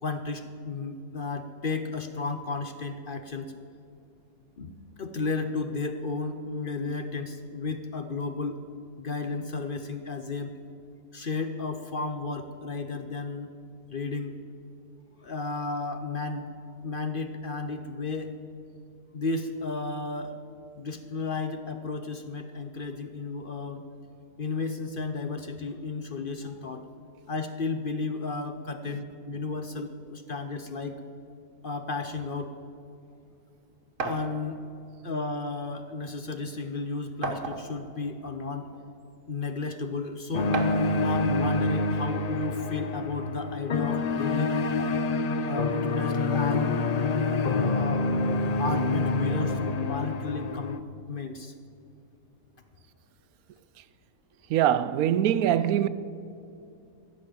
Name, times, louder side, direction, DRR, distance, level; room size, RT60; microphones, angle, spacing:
voice 1, 0.0-3.5 4.6-4.7 5.0-8.6 9.0-10.6 11.1-13.5 13.9-14.3 15.2-16.5 16.8-18.3 19.1-20.4 20.8-23.8 24.4-26.9 27.3-31.0 31.6-32.5 34.0-34.6 35.0-38.7 39.3-40.5 41.0-44.5 45.4-46.7 47.5-48.1 48.6-50.8 51.1-51.5, left 3 dB, 50° left, 0.7 m, -33 dB
sound 1, 34.0-34.3 35.4-35.5 35.9-36.0 37.2-37.9 38.7-38.8 40.5-40.9, right 4 dB, 60° right, 1.5 m, -32 dB
sound 2, 40.3-50.8, left 3 dB, 65° left, 0.4 m, -27 dB
voice 2, 54.5-55.9, right 10 dB, 80° right, 1.1 m, -23 dB
16.0 x 6.4 x 8.9 m
omnidirectional pair, 1.5 m